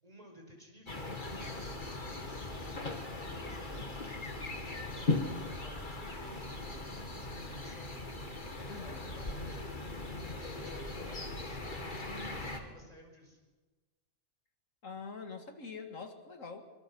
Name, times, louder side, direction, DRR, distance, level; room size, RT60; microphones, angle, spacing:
voice 1, 0.0-13.4, equal, 25° right, 2 dB, 5.3 m, -55 dB
sound 1, 0.9-12.6, left 2 dB, 35° left, 2.4 m, -39 dB
voice 2, 8.7-9.1 14.8-16.6, left 5 dB, 70° left, 6 dB, 2.4 m, -45 dB
25.5 x 24.5 x 6.2 m, 1.3 s
omnidirectional pair, 1.4 m